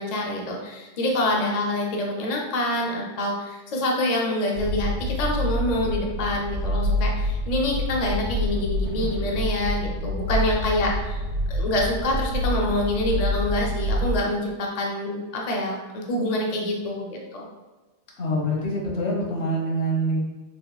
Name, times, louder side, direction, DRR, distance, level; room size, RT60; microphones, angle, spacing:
voice 1, 0.0-11.2 11.5-17.4, left 1 dB, 45° left, -1 dB, 0.5 m, -26 dB
sound 1, 4.6-14.2, left 1 dB, 80° right, 1.0 m, -27 dB
voice 2, 18.2-20.2, right 1 dB, 80° left, -3 dB, 1.2 m, -25 dB
3.4 x 3.2 x 2.2 m, 1.2 s
omnidirectional pair, 1.2 m